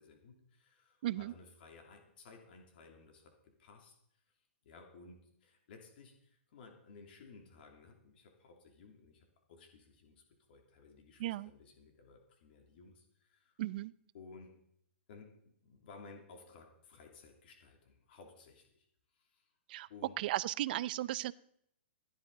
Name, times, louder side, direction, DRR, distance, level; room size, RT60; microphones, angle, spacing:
voice 1, 0.0-4.2 4.6-10.2 10.5-13.5 14.1-14.5 15.1-18.9 19.1-19.5 19.9-20.1, left 4 dB, 55° left, 2 dB, 2.8 m, -57 dB
voice 2, 1.0-1.3 11.2-11.5 13.6-13.9 19.7-19.9 20.2-21.3, right 14 dB, 50° right, 19 dB, 0.5 m, -35 dB
16.0 x 11.5 x 4.0 m, 0.71 s
hypercardioid pair, 140°, 6 cm